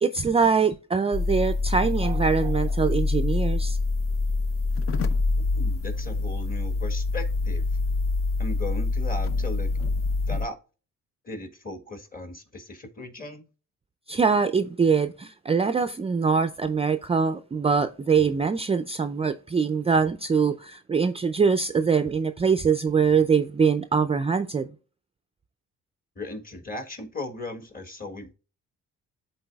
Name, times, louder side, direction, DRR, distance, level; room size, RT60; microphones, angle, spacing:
voice 1, 0.0-3.8 14.1-24.7, right 5 dB, 20° right, 0.4 m, -23 dB
sound 1, 1.1-10.5, left 3 dB, 50° left, 0.6 m, -26 dB
voice 2, 5.5-7.7 8.4-9.7 10.3-10.6 11.2-13.4 26.1-28.3, left 2 dB, 30° left, 1.6 m, -37 dB
12.0 x 4.0 x 2.3 m
cardioid pair, 90°, 30 cm